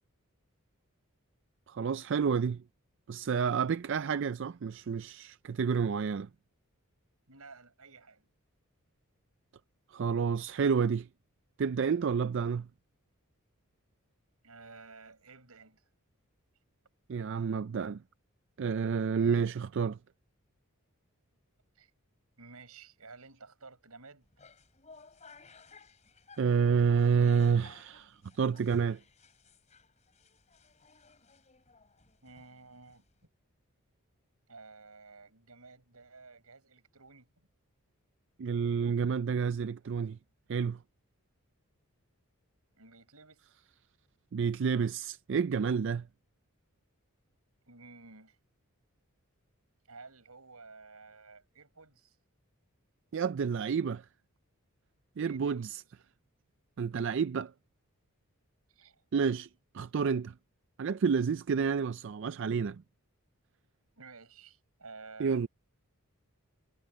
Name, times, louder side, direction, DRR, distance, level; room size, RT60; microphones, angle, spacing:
voice 1, 1.7-2.6 3.1-6.3 9.9-11.1 11.6-12.7 17.1-18.0 18.6-20.0 26.4-29.0 38.4-40.2 40.5-40.8 44.3-46.0 53.1-54.0 55.2-55.8 56.8-57.5 59.1-59.5 59.7-60.3 60.8-62.8 65.2-65.5, right 6 dB, 55° right, 0.4 m, -29 dB
voice 2, 7.3-8.3 14.4-15.9 21.7-21.9 22.4-24.3 32.2-33.1 34.5-37.3 42.7-43.4 47.7-48.4 49.9-52.2 55.2-55.9 56.9-57.1 58.7-59.0 64.0-65.5, right 4 dB, 90° right, 6.0 m, -53 dB
sound 1, 24.2-33.3, left 4 dB, 30° left, 4.7 m, -59 dB
head